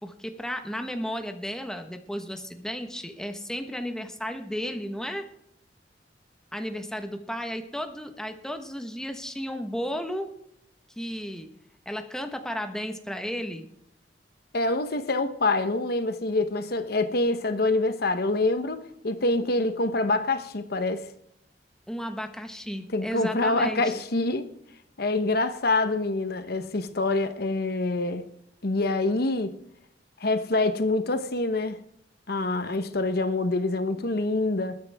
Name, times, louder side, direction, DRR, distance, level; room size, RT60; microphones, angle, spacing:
voice 1, 0.0-5.3 6.5-10.3 11.0-11.5 11.8-13.7 21.9-23.8, equal, 5° left, 1.3 m, -33 dB
voice 2, 14.5-21.1 22.9-24.5 25.0-28.3 28.6-29.6 30.2-31.8 32.3-34.8, left 2 dB, 60° left, 1.0 m, -26 dB
20.5 x 10.0 x 3.5 m
head